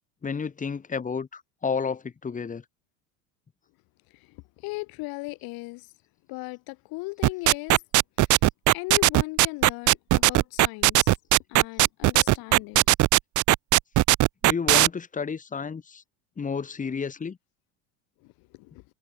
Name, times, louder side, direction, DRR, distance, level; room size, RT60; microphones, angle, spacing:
voice 1, 0.2-2.6 14.4-16.0 16.4-17.4, left 5 dB, 20° left, 1.6 m, -31 dB
voice 2, 4.1-5.9 6.3-7.8 8.7-11.1 11.5-12.8 18.2-18.8, left 25 dB, 65° left, 3.6 m, -37 dB
sound 1, 7.2-14.9, right 17 dB, 50° right, 1.1 m, -18 dB
supercardioid pair, 100°, 38 cm